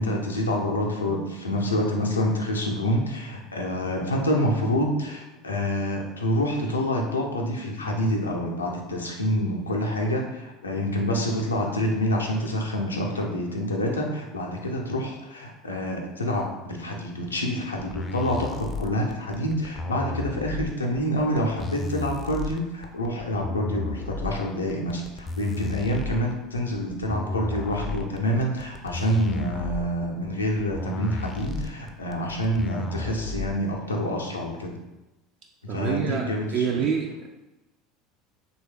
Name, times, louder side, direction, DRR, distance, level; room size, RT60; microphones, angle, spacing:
voice 1, 0.0-34.8 35.6-36.9, equal, 85° left, 0 dB, 0.5 m, -27 dB
sound 1, 17.8-33.8, left 2 dB, 25° left, 0.4 m, -33 dB
voice 2, 35.7-37.3, right 7 dB, 50° right, 1 dB, 0.3 m, -27 dB
3.2 x 2.3 x 3.2 m, 1.0 s
figure-of-eight pair, 70°, 0 cm